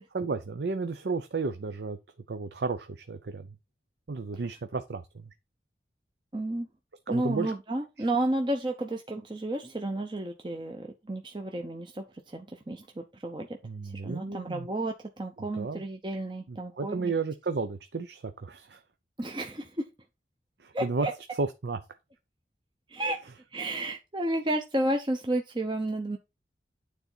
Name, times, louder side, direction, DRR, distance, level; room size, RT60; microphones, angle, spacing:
voice 1, 0.1-2.0 2.3-3.5 4.1-5.0 7.1-7.5 13.6-14.7 15.4-15.8 16.5-18.8 20.6-21.1 21.4-21.8, right 4 dB, 75° right, 0.6 m, -32 dB
voice 2, 6.3-6.7 7.1-13.5 13.8-17.1 19.2-19.8 20.7-21.1 22.9-23.2 23.5-26.2, right 1 dB, 25° right, 0.7 m, -32 dB
9.4 x 4.0 x 4.4 m
head